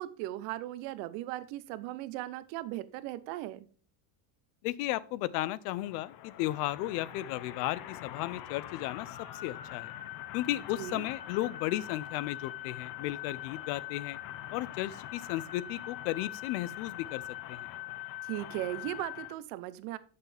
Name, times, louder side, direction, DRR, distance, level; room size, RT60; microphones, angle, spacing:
voice 1, 0.0-3.7 10.8-11.0 18.2-20.0, right 15 dB, 75° right, 0.8 m, -38 dB
voice 2, 4.6-9.1 9.4-9.9 10.3-14.2 14.5-17.2 17.5-17.7, left 16 dB, 90° left, 0.6 m, -34 dB
sound 1, 5.7-19.3, left 13 dB, 55° left, 0.8 m, -43 dB
8.1 x 6.6 x 3.4 m
cardioid pair, 145°, 45 cm